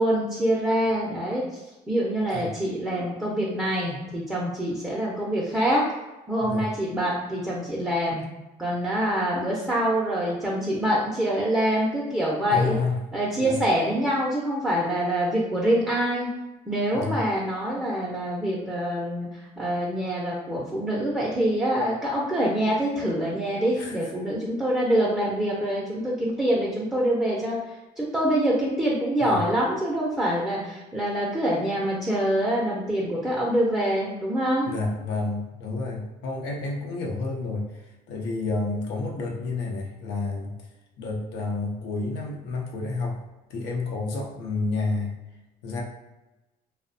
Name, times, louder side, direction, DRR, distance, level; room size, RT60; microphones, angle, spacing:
voice 1, 0.0-1.6 1.9-5.8 6.3-8.3 8.6-12.8 13.1-16.3 16.7-34.7, right 1 dB, 5° right, -5 dB, 0.5 m, -25 dB
voice 2, 12.5-13.0 13.4-13.6 16.9-17.2 23.8-23.9 29.2-29.4 34.7-40.6 41.0-43.2 43.5-45.1 45.6-45.8, left 3 dB, 80° left, 0 dB, 0.6 m, -30 dB
2.6 x 2.1 x 2.5 m, 1.0 s
cardioid pair, 110°, 17 cm